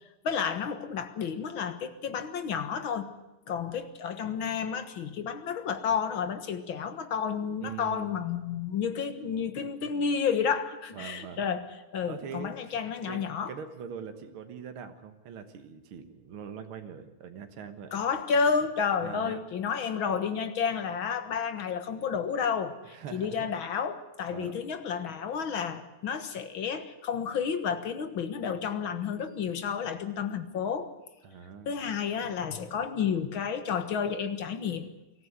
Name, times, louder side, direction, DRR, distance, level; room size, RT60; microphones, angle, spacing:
voice 1, 0.2-3.1 3.5-11.7 11.9-13.5 17.9-30.9 31.7-34.9, left 6 dB, 70° left, 10 dB, 2.2 m, -31 dB
voice 2, 7.6-8.2 10.9-11.4 12.0-12.5 13.1-13.2 13.5-17.9 19.0-19.4 19.8-20.0 22.8-23.5 24.3-24.5 31.2-31.8, right 7 dB, 75° right, 7 dB, 2.2 m, -42 dB
24.0 x 14.5 x 9.5 m, 0.97 s
omnidirectional pair, 2.3 m